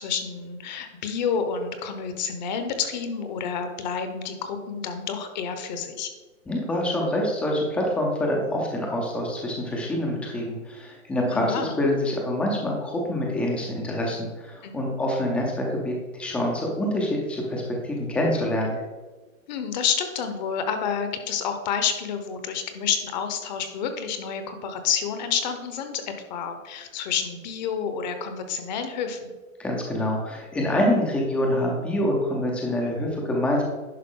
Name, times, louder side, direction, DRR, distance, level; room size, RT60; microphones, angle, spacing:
voice 1, 0.0-6.1 11.3-11.8 14.6-14.7 19.5-29.3, left 7 dB, 30° left, 7 dB, 0.9 m, -29 dB
voice 2, 6.5-18.8 29.6-33.6, left 1 dB, 5° left, -1 dB, 0.6 m, -26 dB
10.5 x 5.5 x 3.7 m, 1.3 s
hypercardioid pair, 155°, 42 cm